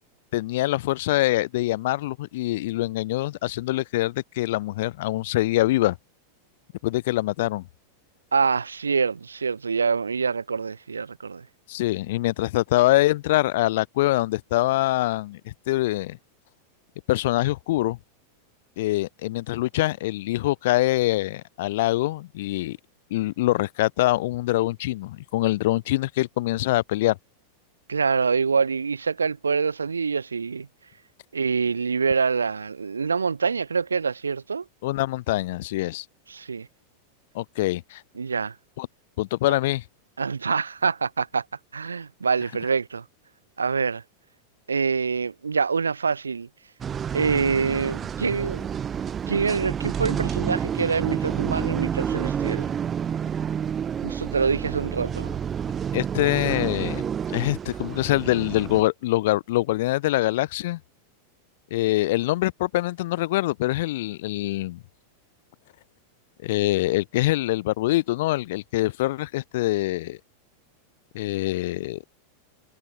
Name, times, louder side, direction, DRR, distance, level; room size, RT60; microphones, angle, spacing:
voice 1, 0.3-6.0 6.8-7.7 11.7-16.2 17.1-18.0 18.8-22.8 23.1-27.2 34.8-36.0 37.3-38.0 38.8-38.9 39.2-39.8 55.9-60.8 61.7-64.8 66.4-70.2 71.1-72.0, left 17 dB, 55° left, 4.2 m, -24 dB
voice 2, 8.3-11.5 27.9-30.7 31.3-34.6 36.3-36.7 38.2-38.6 39.5-39.6 40.2-41.4 41.7-43.0 43.6-44.0 44.7-46.5 47.1-48.7 49.3-52.8 54.0-55.4, right 5 dB, 75° right, 3.6 m, -25 dB
sound 1, 46.8-58.8, right 8 dB, 25° right, 3.0 m, -29 dB
figure-of-eight pair, 90°, 0 cm